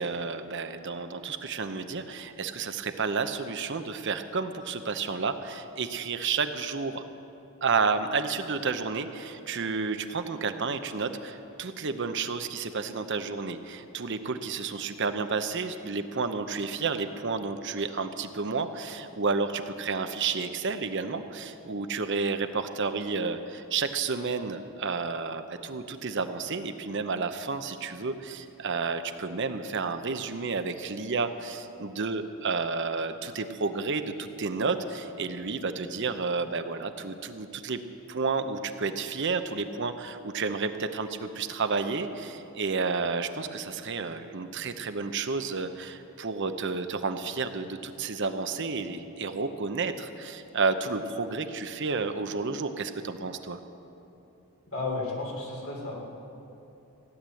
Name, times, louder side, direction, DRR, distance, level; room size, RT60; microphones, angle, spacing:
voice 1, 0.0-7.0 7.6-37.8 38.1-53.6, right 4 dB, 55° right, 9 dB, 0.8 m, -31 dB
voice 2, 54.7-56.0, left 3 dB, 70° left, -2 dB, 3.5 m, -33 dB
16.0 x 10.0 x 7.7 m, 2.9 s
head